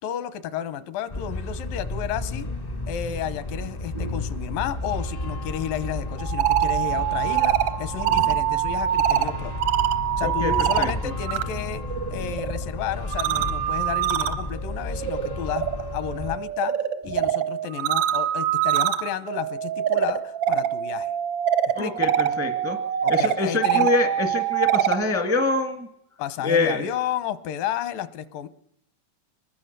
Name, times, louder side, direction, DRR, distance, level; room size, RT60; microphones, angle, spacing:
voice 1, 0.0-2.5 2.9-9.5 10.2-11.8 12.1-16.7 17.0-21.1 21.8-22.0 23.0-23.9 26.2-28.5, left 10 dB, 85° left, 14 dB, 2.7 m, -32 dB
sound 1, 1.1-16.4, left 2 dB, 45° left, 0.5 m, -32 dB
sound 2, 6.2-11.4 11.8-25.0, right 11 dB, 70° right, 1.3 m, -25 dB
voice 2, 10.2-11.1 21.7-22.8 23.1-25.9 26.4-26.9, left 3 dB, 20° right, 6 dB, 0.3 m, -25 dB
24.5 x 20.0 x 6.7 m, 0.79 s
omnidirectional pair, 3.9 m